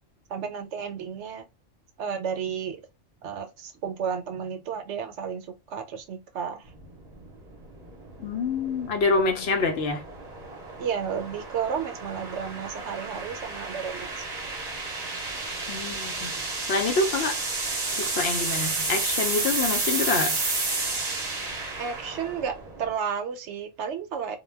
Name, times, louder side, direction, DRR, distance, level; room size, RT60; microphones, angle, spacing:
voice 1, 0.3-1.5 2.0-2.8 3.2-6.7 10.8-14.2 21.8-24.4, right 7 dB, 75° right, 0.9 m, -32 dB
sound 1, 6.7-22.9, right 3 dB, 40° right, 0.7 m, -31 dB
voice 2, 8.2-10.0 15.7-16.4 16.7-17.4 18.0-20.4, left 3 dB, 65° left, 0.8 m, -26 dB
2.2 x 2.2 x 3.2 m
omnidirectional pair, 1.3 m